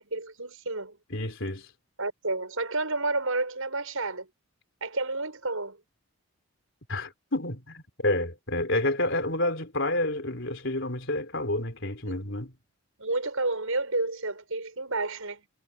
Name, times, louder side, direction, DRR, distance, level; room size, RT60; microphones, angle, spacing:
voice 1, 0.0-1.0 2.0-4.3 4.8-5.8 12.1-12.3 13.0-15.4, right 2 dB, 70° right, 6.6 m, -30 dB
voice 2, 1.1-1.7 6.9-12.5, left 1 dB, 55° left, 4.3 m, -29 dB
head